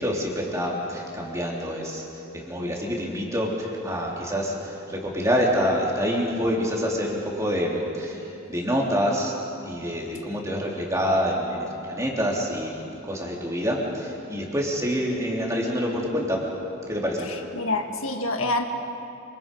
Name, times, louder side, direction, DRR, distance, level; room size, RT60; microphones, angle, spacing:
voice 1, 0.0-2.1 2.3-9.4 9.6-16.4 16.9-17.3, equal, 15° right, -3 dB, 3.6 m, -27 dB
voice 2, 17.3-18.6, left 2 dB, 75° left, 4 dB, 1.9 m, -27 dB
27.5 x 26.5 x 5.5 m, 2.7 s
head